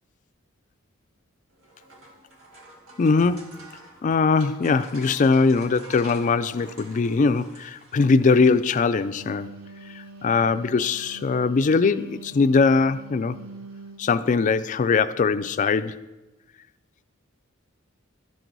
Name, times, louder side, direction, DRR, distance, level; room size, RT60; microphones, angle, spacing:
sound 1, 1.5-9.1, right 2 dB, 90° right, 1.7 m, -48 dB
voice 1, 3.0-3.6 4.0-9.5 9.9-13.4 14.0-16.0, left 4 dB, 40° left, 0.3 m, -21 dB
Wind instrument woodwind instrument, 8.8-14.1, right 2 dB, 70° right, 0.9 m, -44 dB
13.0 x 6.1 x 3.9 m
head